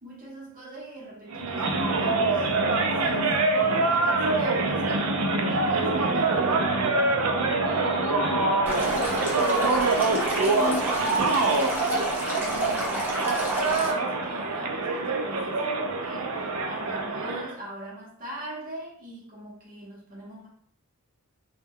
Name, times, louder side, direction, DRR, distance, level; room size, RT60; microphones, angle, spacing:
voice 1, 0.0-5.1 5.5-6.6 12.3-20.5, right 1 dB, 40° right, -3 dB, 0.8 m, -41 dB
sound 1, 1.3-17.5, right 3 dB, 70° right, 0.4 m, -25 dB
voice 2, 7.6-11.5, left 3 dB, 60° left, 6 dB, 0.4 m, -36 dB
Stream, 8.7-13.9, right 1 dB, 10° right, 0.6 m, -31 dB
2.2 x 2.1 x 3.4 m, 0.65 s
head